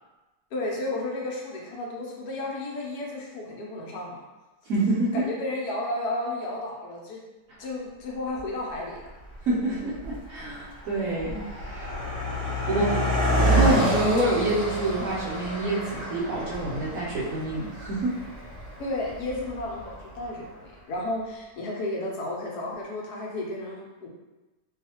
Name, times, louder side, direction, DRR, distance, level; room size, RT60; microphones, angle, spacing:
voice 1, 0.5-4.2 5.1-7.2 7.6-9.1 12.7-13.1 18.8-24.1, left 2 dB, 75° left, -2 dB, 1.1 m, -33 dB
voice 2, 4.7-5.2 9.5-11.9 12.7-12.9 13.4-18.1, right 1 dB, 70° right, -5 dB, 0.9 m, -27 dB
Car passing by, 8.4-8.5 9.2-9.5 9.8-20.2, right 1 dB, 40° left, 1.0 m, -28 dB
2.7 x 2.4 x 2.8 m, 1.1 s
omnidirectional pair, 1.7 m